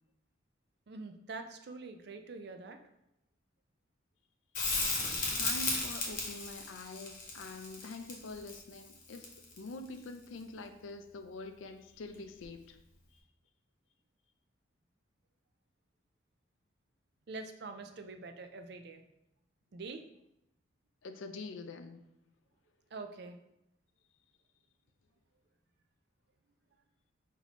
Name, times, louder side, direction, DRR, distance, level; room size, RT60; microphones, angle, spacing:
voice 1, 0.9-2.8 17.3-19.0 19.7-20.0 22.9-23.4, right 3 dB, 55° right, 7 dB, 0.4 m, -45 dB
Crackle, 4.5-9.7 12.4-12.5, left 3 dB, 40° left, 1.0 m, -35 dB
voice 2, 5.4-12.8 21.0-22.0, left 2 dB, 85° left, 7 dB, 0.4 m, -45 dB
5.8 x 2.7 x 3.0 m, 0.85 s
head